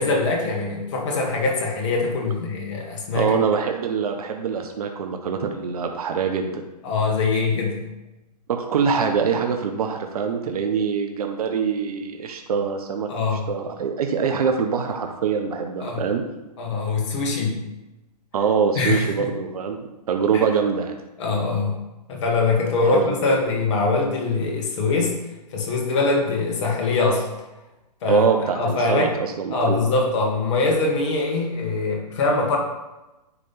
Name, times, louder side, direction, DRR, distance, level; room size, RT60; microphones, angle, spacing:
voice 1, 0.0-3.3 6.8-7.8 13.1-13.4 15.8-16.0 16.6-17.6 18.8-19.3 20.3-20.4 21.2-21.8 22.1-25.1 25.5-27.3 28.0-28.3 28.6-29.1 29.5-32.6, left 3 dB, 45° left, 0 dB, 1.9 m, -23 dB
voice 2, 3.1-6.6 8.5-13.1 13.5-16.2 18.3-19.8 20.1-21.0 22.8-23.4 28.1-29.8, right 6 dB, 60° right, 5 dB, 0.9 m, -24 dB
9.9 x 3.4 x 4.3 m, 1.0 s
hypercardioid pair, 130°, 21 cm